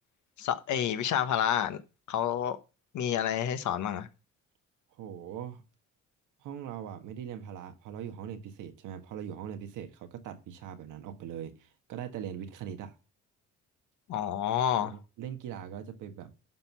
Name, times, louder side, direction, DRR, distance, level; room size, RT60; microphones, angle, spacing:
voice 1, 0.4-1.8 2.1-2.6 2.9-4.1 14.1-15.0, left 9 dB, 75° left, 1.2 m, -29 dB
voice 2, 5.0-5.6 6.4-13.0 14.8-16.3, right 9 dB, 90° right, 1.5 m, -41 dB
11.5 x 4.6 x 5.6 m
cardioid pair, 90°, 30 cm